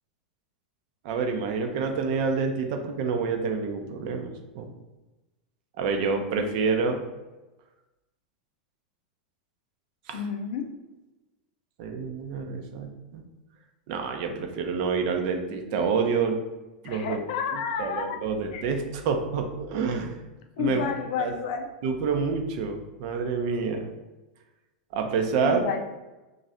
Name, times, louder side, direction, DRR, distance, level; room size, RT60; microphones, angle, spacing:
voice 1, 1.0-4.7 5.8-7.0 10.1-10.3 11.8-13.2 13.9-16.4 16.8-17.3 17.5-20.1 20.6-20.9 21.2-21.3 21.8-23.9 24.9-25.6, right 5 dB, 50° right, 4 dB, 0.6 m, -28 dB
voice 2, 10.1-10.7 16.8-18.2 18.5-18.6 20.6-21.7 25.4-25.8, left 6 dB, 55° left, 4 dB, 0.5 m, -30 dB
3.0 x 2.6 x 4.1 m, 1.1 s
figure-of-eight pair, 90°, 4 cm